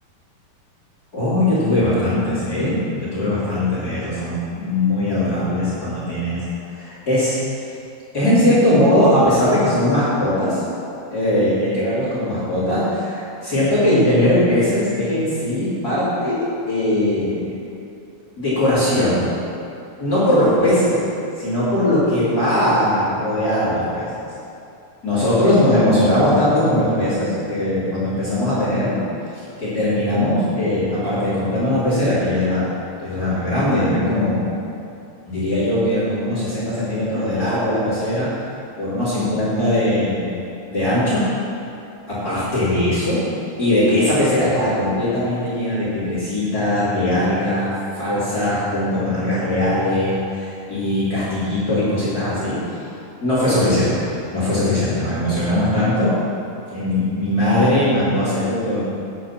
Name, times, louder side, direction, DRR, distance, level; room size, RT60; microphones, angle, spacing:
voice 1, 1.1-6.4 6.7-7.4 8.1-10.6 11.1-17.6 18.4-19.2 20.0-21.0 21.4-24.1 25.0-29.0 29.3-32.7 33.0-34.5 35.3-38.3 38.8-40.4 40.7-41.2 42.1-43.2 43.6-47.7 47.9-52.8 53.2-56.1 56.7-58.8, left 1 dB, 25° left, -12 dB, 3.2 m, -20 dB
9.7 x 9.3 x 5.9 m, 2.7 s
omnidirectional pair, 4.4 m